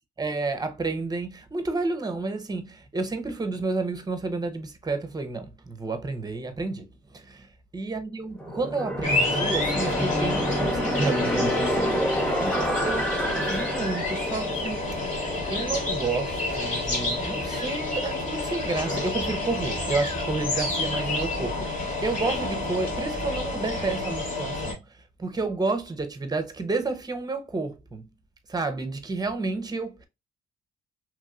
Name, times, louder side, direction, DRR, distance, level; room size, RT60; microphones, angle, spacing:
voice 1, 0.2-7.4 7.7-12.1 12.4-28.1 28.5-30.1, right 3 dB, 20° right, 0.7 m, -31 dB
sound 1, 8.4-19.1, equal, 5° left, 0.9 m, -30 dB
sound 2, 9.0-24.7, left 2 dB, 40° left, 1.5 m, -29 dB
3.0 x 2.8 x 2.4 m
cardioid pair, 90°, 20 cm